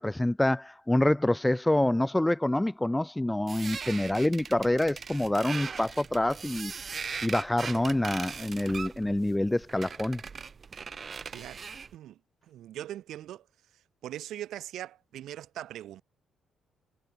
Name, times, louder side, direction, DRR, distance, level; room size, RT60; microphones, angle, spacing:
voice 1, 0.0-6.7 7.2-10.2, left 1 dB, 10° left, 0.6 m, -26 dB
sound 1, 3.5-11.9, right 5 dB, 40° right, 1.1 m, -40 dB
voice 2, 11.3-12.2 12.5-13.4 14.0-16.0, right 12 dB, 80° right, 5.0 m, -41 dB
cardioid pair, 90°, 0 cm